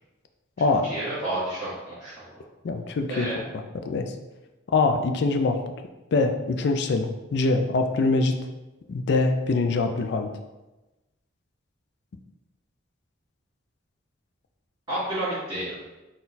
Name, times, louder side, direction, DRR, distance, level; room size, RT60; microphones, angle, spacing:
voice 1, 0.8-2.3 3.1-3.4 14.9-15.8, right 1 dB, 20° right, -15 dB, 1.5 m, -30 dB
voice 2, 2.6-3.3 3.8-4.1 4.7-5.6 6.1-8.4 8.9-10.3, left 3 dB, 55° left, 5 dB, 0.3 m, -23 dB
4.2 x 2.2 x 3.9 m, 1.1 s
head